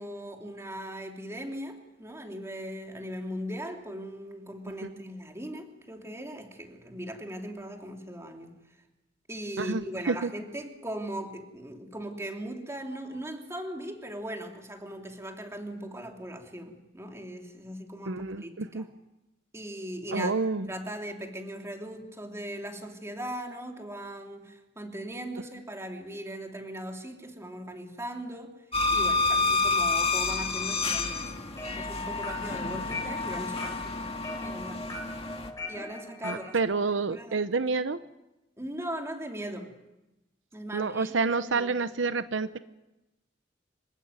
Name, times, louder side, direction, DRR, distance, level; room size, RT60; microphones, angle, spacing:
voice 1, 0.0-8.6 9.3-18.9 19.5-20.3 20.7-28.6 28.9-31.3 31.8-34.9 35.7-36.5 36.8-37.4 38.6-39.7 40.5-41.7, right 1 dB, 15° right, 3 dB, 2.9 m, -39 dB
voice 2, 9.6-10.3 18.1-18.9 20.1-20.7 36.2-38.0 40.7-42.6, right 4 dB, 80° right, 12 dB, 0.8 m, -29 dB
sound 1, 28.7-35.5, left 3 dB, 30° left, 2.0 m, -29 dB
sound 2, 31.2-36.6, left 1 dB, 15° left, 3.9 m, -41 dB
26.5 x 15.5 x 9.5 m, 1.0 s
head